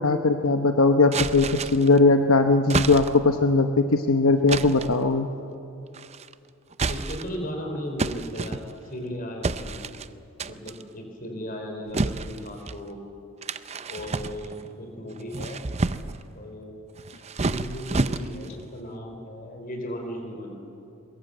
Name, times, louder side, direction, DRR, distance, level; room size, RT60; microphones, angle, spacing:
voice 1, 0.0-5.3, left 3 dB, 80° left, 6 dB, 1.0 m, -20 dB
sound 1, 1.1-2.0 2.7-3.3 4.5-5.0 5.9-6.3 6.7-7.4 8.0-9.0 9.4-10.1 10.4-10.8 11.9-12.8 13.4-14.7 15.2-16.2 17.0-18.6, right 3 dB, 30° right, 0.6 m, -30 dB
voice 2, 6.9-9.8 10.4-13.0 13.9-15.6 16.3-16.9 17.3-20.5, equal, 40° left, 3 dB, 4.6 m, -36 dB
23.5 x 22.0 x 8.0 m, 2.7 s
head